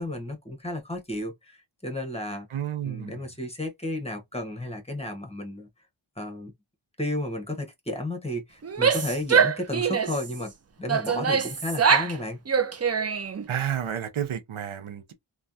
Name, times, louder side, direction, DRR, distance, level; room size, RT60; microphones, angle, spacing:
voice 1, 0.0-2.5 2.8-5.7 6.2-6.5 7.0-10.5 10.8-12.4, left 1 dB, 15° left, 1.2 m, -33 dB
voice 2, 2.5-3.2 13.5-15.1, right 9 dB, 90° right, 0.7 m, -31 dB
Female speech woman speaking / Yell, 8.6-10.3 10.9-12.2 12.5-13.4, right 6 dB, 35° right, 0.5 m, -23 dB
3.2 x 2.4 x 2.6 m
wide cardioid pair, 55°, 48 cm